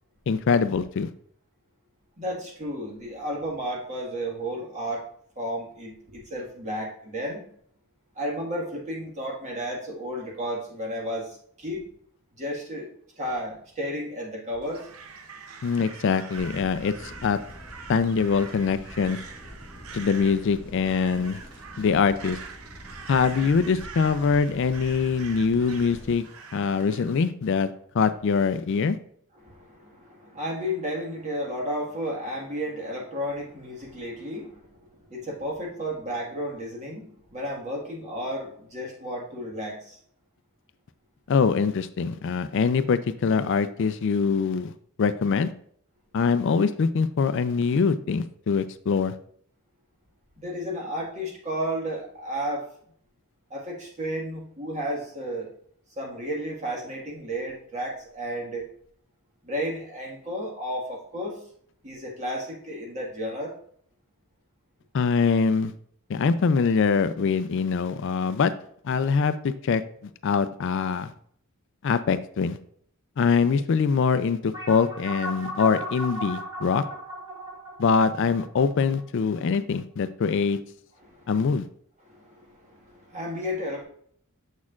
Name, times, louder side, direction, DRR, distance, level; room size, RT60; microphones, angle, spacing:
voice 1, 0.3-1.1 15.6-17.4 17.9-19.2 19.9-21.4 21.8-22.4 23.1-26.2 26.5-27.7 27.9-29.0 41.3-44.7 45.0-45.5 46.1-49.1 64.9-65.7 66.1-68.5 68.8-69.8 70.2-71.1 71.8-72.6 73.2-76.8 77.8-80.6 81.3-81.7, left 5 dB, 55° left, 13 dB, 0.4 m, -23 dB
voice 2, 2.2-5.1 5.3-7.4 8.1-11.8 12.4-12.9 13.2-14.9 26.7-26.9 29.4-40.0 50.4-52.7 53.5-55.5 55.9-58.7 59.4-61.4 61.8-63.6 81.0-81.3 82.0-83.8, equal, 35° right, -1 dB, 1.7 m, -33 dB
Crow, 14.6-27.3, right 5 dB, 75° right, 0.7 m, -44 dB
sound 1, 16.4-26.1, equal, 20° left, 1.8 m, -45 dB
sound 2, 74.5-79.4, equal, 15° right, 1.5 m, -36 dB
7.2 x 6.3 x 2.4 m, 0.62 s
head